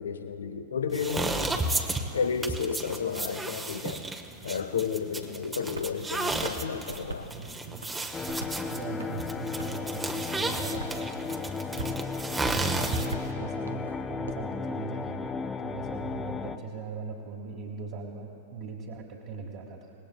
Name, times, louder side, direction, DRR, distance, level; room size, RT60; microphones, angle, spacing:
voice 1, 0.0-1.7 2.1-4.0 4.4-7.3, left 6 dB, 70° left, 10 dB, 0.7 m, -32 dB
sound 1, 0.9-13.3, right 2 dB, 10° right, 1.0 m, -33 dB
voice 2, 1.5-1.9 7.3-7.8 8.6-11.9 12.5-19.9, right 4 dB, 40° right, -3 dB, 1.8 m, -40 dB
sound 2, 5.7-5.9 6.3-7.3 7.7-8.6 9.0-9.9 10.3-11.0 11.3-12.0 12.3-14.3, right 2 dB, 75° right, 0.8 m, -42 dB
sound 3, 8.1-16.6, left 5 dB, 15° left, 0.6 m, -35 dB
25.0 x 19.5 x 2.3 m, 2.6 s
figure-of-eight pair, 100°, 0 cm